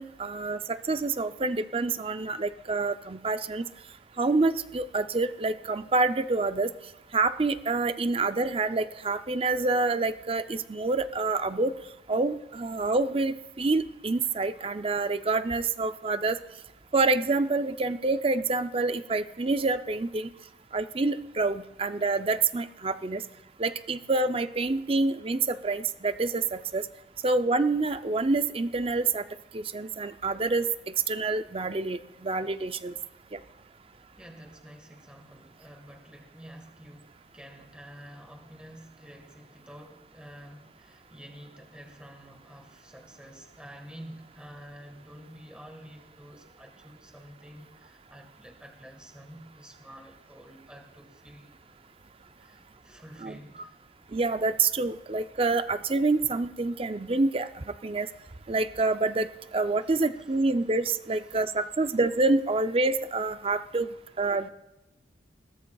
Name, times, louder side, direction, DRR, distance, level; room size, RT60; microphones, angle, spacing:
voice 1, 0.0-3.7 4.2-6.7 7.1-11.7 12.1-16.4 16.9-20.3 20.7-23.2 23.6-26.8 27.2-29.2 29.5-30.6 31.1-32.9 33.3-33.4 53.2-53.4 54.1-58.1 58.5-63.9 64.2-64.5, right 3 dB, 30° right, 11 dB, 0.5 m, -27 dB
voice 2, 34.2-51.5 52.4-53.7 59.8-59.9 60.2-60.3 61.2-61.4, equal, 5° right, 3 dB, 1.5 m, -49 dB
21.0 x 16.5 x 2.3 m, 0.94 s
head